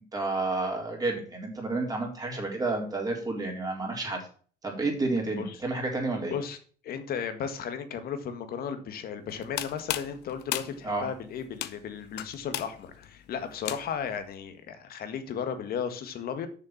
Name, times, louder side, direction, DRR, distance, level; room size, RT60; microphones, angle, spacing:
voice 1, 0.1-4.3 4.6-6.3 10.8-11.1, right 2 dB, 20° right, 1 dB, 3.8 m, -30 dB
voice 2, 6.8-16.5, left 7 dB, 65° left, 9 dB, 1.8 m, -35 dB
sound 1, 9.3-14.2, left 13 dB, 80° left, 0.9 m, -36 dB
7.0 x 6.5 x 7.3 m, 0.43 s
cardioid pair, 110°, 17 cm